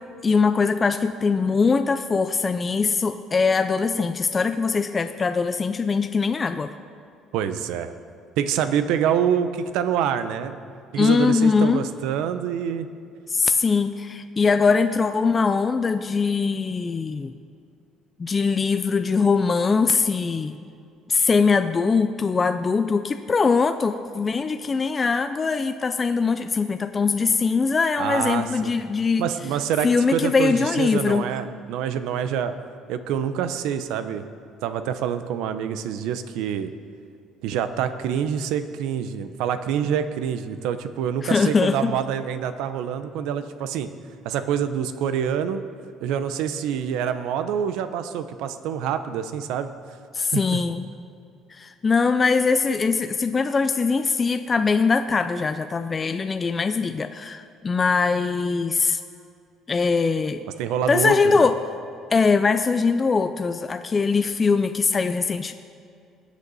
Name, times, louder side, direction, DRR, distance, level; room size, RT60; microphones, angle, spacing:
voice 1, 0.2-6.7 11.0-11.9 13.3-17.3 18.2-20.5 21.1-29.3 29.8-31.2 41.2-42.0 50.1-50.9 51.5-59.0 59.7-60.4 60.9-61.6 62.1-65.5, left 4 dB, 20° left, 8 dB, 0.3 m, -22 dB
voice 2, 7.3-7.9 8.4-10.6 10.9-12.9 28.0-28.7 29.2-32.6 32.9-34.2 34.6-36.7 37.4-43.9 44.2-45.6 46.0-49.7 50.2-50.6 60.6-61.5, right 8 dB, 85° right, 11 dB, 0.7 m, -26 dB
21.0 x 8.3 x 4.1 m, 2.4 s
cardioid pair, 160°, 0 cm